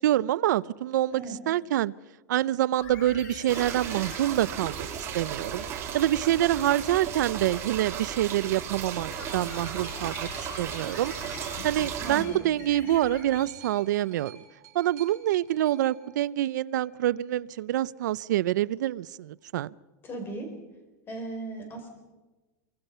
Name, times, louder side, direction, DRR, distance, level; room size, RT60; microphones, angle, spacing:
voice 1, 0.0-1.9 2.3-4.9 5.1-5.6 5.9-14.4 14.7-19.7, right 13 dB, 85° right, 19 dB, 0.6 m, -26 dB
sound 1, 2.8-4.3 9.1-13.8, left 5 dB, 85° left, 7.9 m, -44 dB
sound 2, 3.5-12.2, right 8 dB, 30° right, 3.8 m, -35 dB
sound 3, 11.5-16.9 17.8-17.9, right 10 dB, 55° right, 7.2 m, -53 dB
voice 2, 12.0-12.5 12.8-12.9 20.0-20.5 21.1-21.9, right 2 dB, 25° left, 5 dB, 4.9 m, -37 dB
24.5 x 24.0 x 5.6 m, 1.1 s
supercardioid pair, 155°, 10 cm